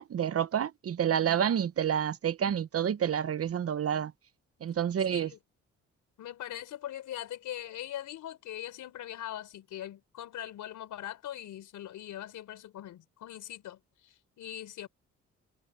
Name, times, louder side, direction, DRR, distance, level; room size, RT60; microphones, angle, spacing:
voice 1, 0.0-4.1 4.6-5.3, right 9 dB, 50° right, 1.1 m, -29 dB
voice 2, 6.2-14.9, left 12 dB, 80° left, 4.2 m, -41 dB
cardioid pair, 90°, 30 cm